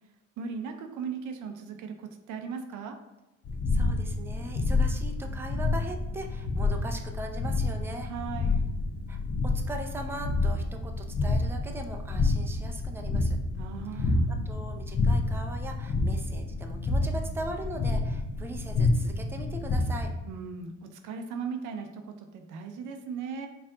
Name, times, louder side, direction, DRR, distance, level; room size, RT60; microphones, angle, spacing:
voice 1, 0.4-3.0 8.0-8.6 13.6-14.3 20.3-23.5, right 6 dB, 90° right, 5 dB, 0.6 m, -38 dB
sound 1, 3.5-20.2, left 3 dB, 50° left, 0.8 m, -29 dB
voice 2, 3.7-8.1 9.1-13.4 13.9-20.1, right 2 dB, 10° right, 3 dB, 0.4 m, -40 dB
4.4 x 2.5 x 3.7 m, 0.95 s
cardioid pair, 90°, 30 cm